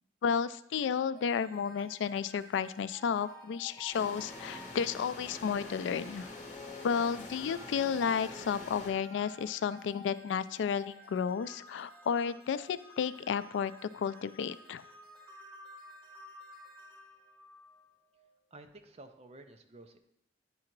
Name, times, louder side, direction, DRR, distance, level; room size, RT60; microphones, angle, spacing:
voice 1, 0.2-6.3 6.8-14.8, left 7 dB, 90° left, 16 dB, 0.3 m, -32 dB
sound 1, 1.2-18.3, left 1 dB, 5° left, 1.3 m, -54 dB
sound 2, 3.9-8.9, left 2 dB, 45° left, 1.5 m, -45 dB
voice 2, 18.5-20.0, right 2 dB, 35° right, 7 dB, 0.6 m, -52 dB
9.7 x 3.8 x 4.5 m, 0.79 s
head